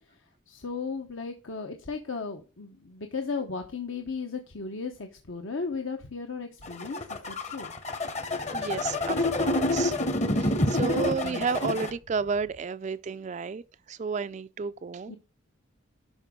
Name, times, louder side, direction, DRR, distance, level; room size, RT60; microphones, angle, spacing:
voice 1, 0.1-7.7 10.7-11.8 15.1-15.2, left 4 dB, 75° left, 1.1 m, -36 dB
sound 1, 6.6-11.9, left 1 dB, 35° left, 0.9 m, -28 dB
voice 2, 8.5-9.9 10.3-13.6 13.9-15.1, right 5 dB, 35° right, 0.3 m, -32 dB
12.0 x 5.1 x 3.7 m
head